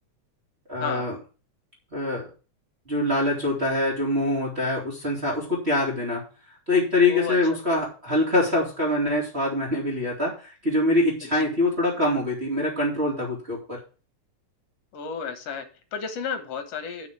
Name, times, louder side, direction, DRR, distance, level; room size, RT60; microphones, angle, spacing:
voice 1, 0.7-1.2 1.9-2.3 2.9-6.2 6.7-13.8, left 2 dB, 20° right, -5 dB, 2.6 m, -24 dB
voice 2, 14.9-17.1, left 6 dB, 60° left, 8 dB, 2.2 m, -32 dB
7.0 x 6.1 x 7.2 m, 0.36 s
omnidirectional pair, 3.4 m